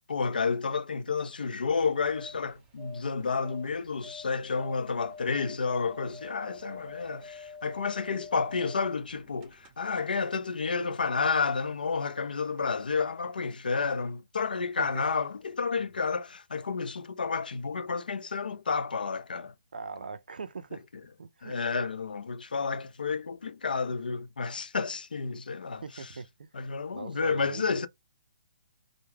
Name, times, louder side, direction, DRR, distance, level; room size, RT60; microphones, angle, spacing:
voice 1, 0.1-19.5 21.4-25.8 26.5-27.9, left 5 dB, 80° left, 0.5 m, -30 dB
sound 1, 1.9-10.0 10.3-10.4, left 4 dB, 20° right, 0.6 m, -48 dB
voice 2, 19.7-21.9 25.8-26.5 26.9-27.9, right 4 dB, 75° right, 0.4 m, -41 dB
2.2 x 2.0 x 3.2 m
hypercardioid pair, 145°, 5 cm